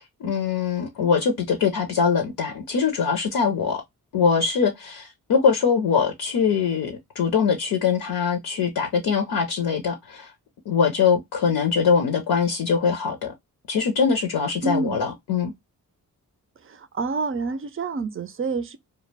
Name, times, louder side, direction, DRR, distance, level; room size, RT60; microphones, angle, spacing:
voice 1, 0.2-3.8 4.1-10.3 10.7-13.3 13.7-15.5, left 6 dB, 70° left, 0.6 m, -22 dB
voice 2, 14.6-15.0 16.6-18.8, right 4 dB, 35° right, 0.5 m, -28 dB
2.1 x 2.1 x 3.2 m
cardioid pair, 50°, 38 cm